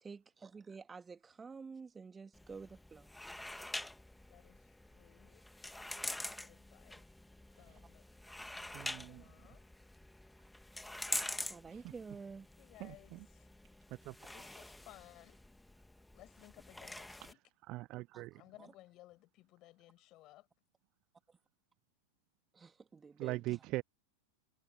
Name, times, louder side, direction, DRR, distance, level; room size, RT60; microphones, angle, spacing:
voice 1, 0.0-3.5 11.1-12.5 14.3-14.4 18.1-18.3 18.6-18.7 22.5-23.6, right 5 dB, 15° right, 2.3 m, -51 dB
sound 1, 2.3-17.3, left 1 dB, 5° left, 1.7 m, -46 dB
voice 2, 4.3-5.4 6.0-7.1 7.6-8.0 8.5-9.6 12.6-13.5 14.3-15.4 16.1-17.4 18.4-20.5, left 17 dB, 35° left, 7.2 m, -60 dB
voice 3, 8.7-9.2 12.8-13.2 14.1-14.2 17.7-18.3 23.2-23.8, right 19 dB, 40° right, 0.8 m, -40 dB
figure-of-eight pair, 90°, 0 cm